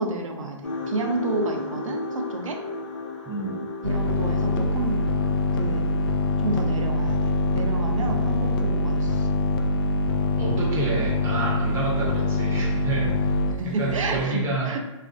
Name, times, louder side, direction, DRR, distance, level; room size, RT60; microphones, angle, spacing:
voice 1, 0.0-2.6 3.8-5.0 5.5-5.8 6.4-7.2 7.5-9.3 10.5-10.7 13.6-14.8, right 2 dB, 85° right, 3 dB, 0.5 m, -30 dB
sound 1, 0.6-10.6 10.9-11.2 11.8-11.9, left 2 dB, 85° left, 0.8 m, -37 dB
sound 2, 3.8-14.2, left 2 dB, 45° left, 0.4 m, -24 dB
voice 2, 10.4-13.2 13.6-14.7, right 3 dB, 15° right, -4 dB, 0.6 m, -29 dB
3.3 x 2.4 x 2.5 m, 1.1 s
hypercardioid pair, 140°, 16 cm